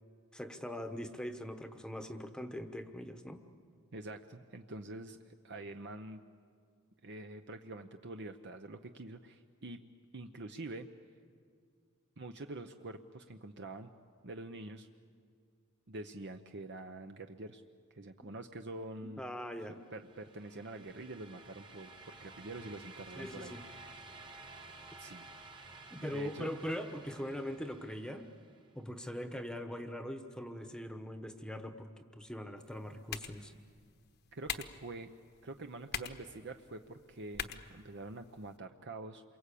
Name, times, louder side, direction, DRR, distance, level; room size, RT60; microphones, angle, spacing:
voice 1, 0.3-3.4 19.2-19.8 23.2-23.6 25.9-28.3 28.7-33.5, equal, 5° left, 8 dB, 1.1 m, -41 dB
voice 2, 3.9-6.2 7.0-9.8 10.1-10.9 12.2-13.9 14.2-14.9 15.9-17.6 17.9-19.2 19.9-24.2 25.0-25.3 26.0-26.5 34.3-35.1 35.4-39.2, right 2 dB, 55° right, 6 dB, 0.8 m, -46 dB
sound 1, 19.8-28.7, right 3 dB, 20° right, 1.4 m, -53 dB
sound 2, 32.6-38.6, left 8 dB, 50° left, 1.1 m, -46 dB
27.5 x 23.5 x 8.5 m, 2.1 s
head